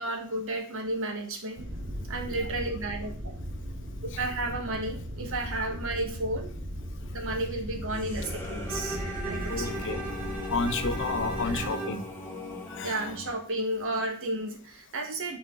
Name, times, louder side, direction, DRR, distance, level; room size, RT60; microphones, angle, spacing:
voice 1, 0.0-1.7 2.1-3.3 4.0-6.5 7.1-9.8 11.5-11.7 12.8-15.4, right 2 dB, 65° right, 4 dB, 1.6 m, -33 dB
sound 1, 1.6-11.7, equal, 40° right, 1.9 m, -37 dB
sound 2, 7.9-13.4, left 1 dB, 10° left, 1.4 m, -39 dB
Bowed string instrument, 8.7-12.1, right 3 dB, 5° right, 2.1 m, -38 dB
voice 2, 9.5-10.0 10.5-12.0 12.7-13.0, left 3 dB, 60° left, 10 dB, 0.8 m, -31 dB
10.0 x 4.3 x 3.9 m, 0.42 s
head